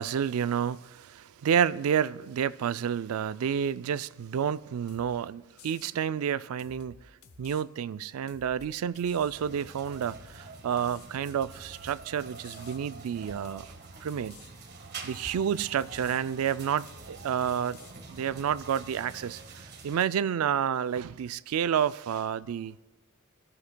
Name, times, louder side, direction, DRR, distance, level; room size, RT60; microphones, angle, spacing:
voice 1, 0.0-7.0 7.4-13.7 14.0-14.3 15.0-17.8 18.1-22.8, right 8 dB, 90° right, 0.3 m, -30 dB
sound 1, 4.9-5.1 5.6-6.0 6.6-7.6 8.3-8.5 8.9-9.4 10.0-10.3 10.8-12.0 12.4-12.8 13.4-13.7 14.1-14.5 15.1-15.4 15.8-16.2 16.9-17.1 17.4-18.6, left 5 dB, 85° left, 0.8 m, -54 dB
sound 2, 8.3-14.0 14.3-14.4 14.7-14.8 15.2-17.3, left 1 dB, 50° left, 3.8 m, -58 dB
sound 3, 9.3-20.0, right 4 dB, 50° right, 1.5 m, -46 dB
22.5 x 14.5 x 2.2 m
head